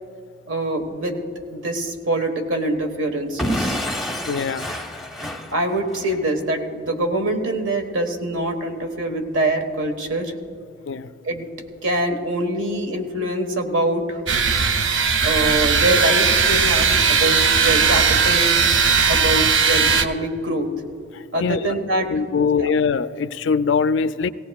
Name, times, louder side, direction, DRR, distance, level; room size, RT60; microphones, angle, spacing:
voice 1, 0.5-3.8 5.2-10.3 11.2-11.5 11.8-14.2 15.2-18.6 19.1-20.7 21.3-22.7, right 1 dB, 80° right, 5 dB, 1.4 m, -24 dB
Explosion / Shatter, 3.4-6.2, equal, ahead, 0.6 m, -27 dB
voice 2, 4.3-4.7 10.9-11.1 21.4-21.6 22.1-24.3, left 5 dB, 65° left, 13 dB, 0.4 m, -22 dB
sound 1, 14.3-20.1, right 5 dB, 60° right, 0.6 m, -18 dB
18.0 x 17.5 x 2.4 m, 2.4 s
head